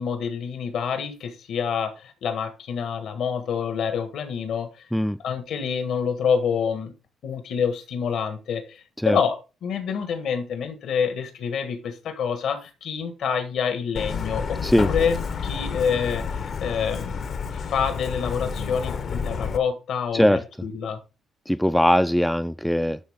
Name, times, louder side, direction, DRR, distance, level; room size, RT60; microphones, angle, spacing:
voice 1, 0.0-4.8 5.2-6.9 7.2-9.4 9.6-15.2 15.4-16.2 16.6-17.3 17.5-21.0, left 6 dB, 70° left, 1.5 m, -27 dB
Truck, 14.0-19.6, left 5 dB, 55° left, 0.9 m, -30 dB
voice 2, 21.5-23.0, equal, ahead, 0.4 m, -20 dB
11.5 x 3.9 x 3.6 m
cardioid pair, 90°, 0 cm